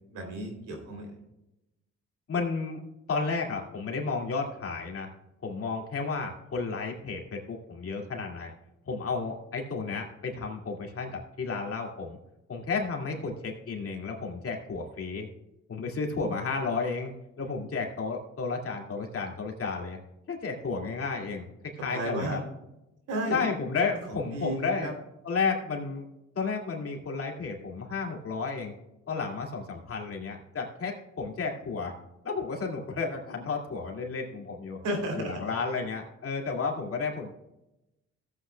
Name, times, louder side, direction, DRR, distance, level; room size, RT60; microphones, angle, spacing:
voice 1, 0.1-1.1 16.1-16.3 21.9-22.4 23.1-23.4 24.1-24.9 34.8-35.5, right 1 dB, 85° right, 2 dB, 3.2 m, -33 dB
voice 2, 2.3-2.8 3.1-5.1 5.4-8.5 8.9-12.2 12.5-15.3 15.7-20.0 20.3-22.4 23.3-24.9 25.2-26.0 26.4-28.7 29.1-31.9 32.2-34.8 35.1-37.3, left 4 dB, 50° left, 1 dB, 2.3 m, -32 dB
15.0 x 8.6 x 2.3 m, 0.92 s
cardioid pair, 90°, 30 cm